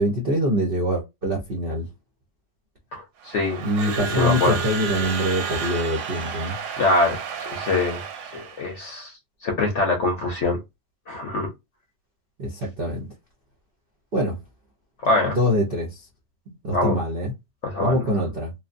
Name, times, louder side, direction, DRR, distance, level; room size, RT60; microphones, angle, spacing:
voice 1, 0.0-1.9 3.6-6.6 12.4-13.1 14.1-14.4 15.2-16.0 16.5-17.3 17.8-18.5, equal, 60° right, 0.5 m, -24 dB
voice 2, 2.9-3.6 4.0-4.6 6.8-8.0 8.3-9.1 9.4-10.6 11.1-11.5 15.0-15.4 16.7-17.0 17.6-18.0, left 2 dB, 55° left, 0.8 m, -24 dB
Crowd / Alarm, 3.2-8.8, right 6 dB, 85° right, 1.3 m, -31 dB
3.1 x 2.0 x 2.5 m
omnidirectional pair, 2.0 m